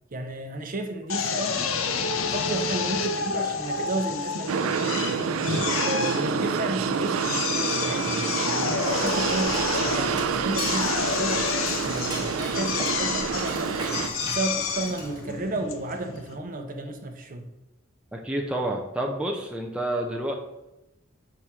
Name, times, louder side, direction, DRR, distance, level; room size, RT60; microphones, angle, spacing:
voice 1, 0.1-1.7 2.2-5.1 5.5-11.4 11.8-13.9 14.2-17.5, right 2 dB, 45° right, 5 dB, 0.8 m, -33 dB
Drill, 1.1-16.4, left 5 dB, 75° left, 0.7 m, -29 dB
sound 1, 4.5-14.1, right 6 dB, 80° right, 0.4 m, -28 dB
Dishes pots and pans / Cutlery silverware, 8.6-15.4, right 2 dB, 20° right, 1.4 m, -38 dB
voice 2, 18.1-20.3, right 1 dB, 5° right, 0 dB, 0.6 m, -29 dB
4.9 x 4.3 x 5.9 m, 0.93 s
head